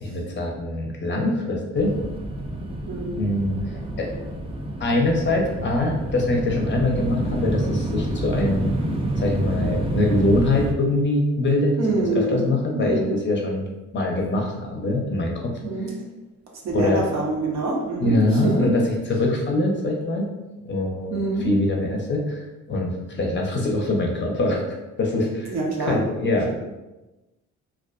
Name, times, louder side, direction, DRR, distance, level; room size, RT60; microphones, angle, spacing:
voice 1, 0.0-2.0 3.2-4.1 4.8-8.7 9.2-11.7 12.1-13.6 13.9-15.5 16.7-17.0 18.0-18.8 19.1-20.3 20.7-22.4 22.7-24.6 25.0-26.5, left 2 dB, 40° left, 0 dB, 0.5 m, -23 dB
sound 1, 1.7-10.7, right 1 dB, 20° right, 0.3 m, -28 dB
voice 2, 2.9-3.2 11.8-13.1 15.6-15.9 16.6-18.7 21.1-21.5 25.5-26.0, right 2 dB, 65° right, -1 dB, 0.7 m, -25 dB
2.3 x 2.2 x 2.4 m, 1.0 s
cardioid pair, 90°, 30 cm